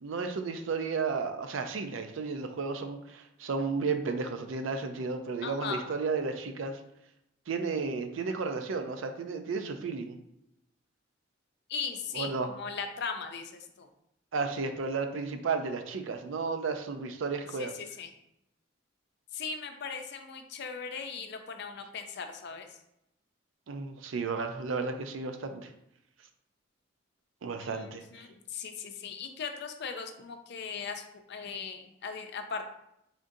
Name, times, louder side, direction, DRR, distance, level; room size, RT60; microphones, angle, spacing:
voice 1, 0.0-6.8 7.5-10.2 12.1-12.5 14.3-17.7 23.7-25.7 27.4-28.0, right 4 dB, 80° right, 7 dB, 0.4 m, -33 dB
voice 2, 5.4-5.9 11.7-13.9 17.5-18.1 19.3-22.7 27.6-32.6, left 5 dB, 60° left, 6 dB, 0.5 m, -38 dB
3.8 x 3.6 x 2.6 m, 0.81 s
head